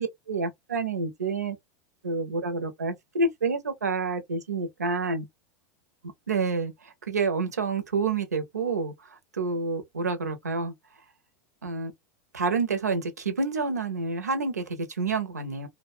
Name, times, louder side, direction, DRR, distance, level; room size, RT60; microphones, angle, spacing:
voice 1, 0.0-1.6 2.0-5.3 6.3-10.7 11.6-11.9 12.3-15.7, right 4 dB, 90° right, 0.6 m, -28 dB
2.6 x 2.1 x 2.3 m
hypercardioid pair, 90°, 9 cm